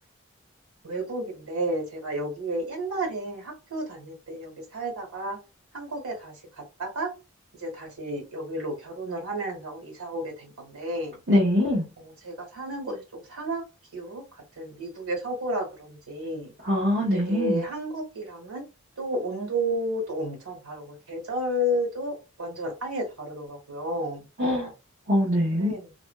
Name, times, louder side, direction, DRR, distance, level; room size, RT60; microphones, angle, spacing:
voice 1, 0.8-5.4 5.7-7.1 7.6-11.2 12.0-13.6 13.9-14.2 14.6-16.5 17.1-18.6 19.0-24.3 25.4-25.9, right 1 dB, 90° right, 1.5 m, -32 dB
voice 2, 11.3-11.9 16.6-17.6 24.4-24.7 25.1-25.7, equal, 45° right, 1.0 m, -23 dB
2.5 x 2.2 x 2.2 m
head